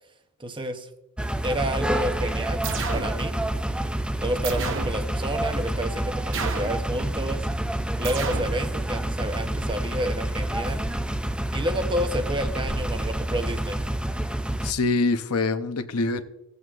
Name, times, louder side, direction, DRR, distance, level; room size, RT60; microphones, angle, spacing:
voice 1, 0.4-0.9 1.4-2.6 2.9-3.4 4.2-7.5 8.0-10.8 11.5-13.8, right 1 dB, 20° right, 7 dB, 0.8 m, -30 dB
sound 1, 1.2-14.7, right 1 dB, 5° right, 0.4 m, -28 dB
sound 2, 2.6-3.2 4.4-5.0 6.3-6.8 8.0-8.6, right 4 dB, 60° right, 0.8 m, -30 dB
voice 2, 14.6-16.2, left 3 dB, 70° left, 10 dB, 0.7 m, -24 dB
16.0 x 7.8 x 2.4 m, 0.88 s
head